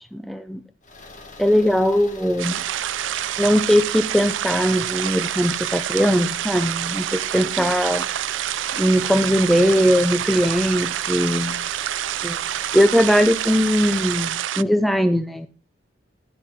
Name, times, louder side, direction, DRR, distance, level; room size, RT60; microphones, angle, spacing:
voice 1, 0.1-0.6 1.4-2.6 3.4-8.1 8.7-11.6 12.2-12.4 12.7-15.5, equal, ahead, 9 dB, 0.5 m, -20 dB
sound 1, 0.8-14.5, left 3 dB, 40° left, 1.9 m, -42 dB
sound 2, 2.4-14.6, right 12 dB, 90° right, 0.4 m, -27 dB
11.5 x 8.9 x 3.6 m, 0.36 s
head